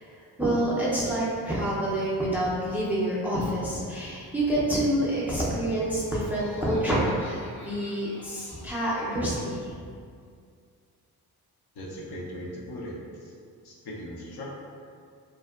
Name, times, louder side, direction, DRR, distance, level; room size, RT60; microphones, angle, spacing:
voice 1, 0.4-9.7, right 1 dB, 5° right, -7 dB, 0.4 m, -27 dB
Laughter, 6.2-9.1, equal, 45° left, 0.8 m, -48 dB
voice 2, 11.7-13.3 13.6-14.5, equal, 70° left, -5 dB, 0.7 m, -39 dB
2.6 x 2.1 x 2.3 m, 2.2 s
cardioid pair, 95°, 40 cm